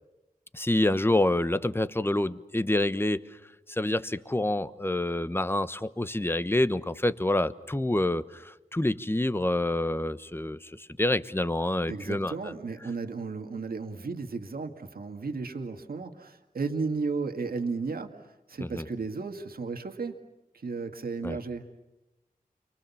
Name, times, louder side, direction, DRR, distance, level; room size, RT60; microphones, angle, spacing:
voice 1, 0.5-3.2 3.7-12.5 18.6-18.8 21.2-21.4, left 1 dB, 15° left, 13 dB, 1.1 m, -27 dB
voice 2, 11.9-18.2 18.5-20.2 20.6-21.8, right 4 dB, 80° right, 5 dB, 2.0 m, -34 dB
30.0 x 24.5 x 7.2 m, 0.99 s
wide cardioid pair, 60°, 15 cm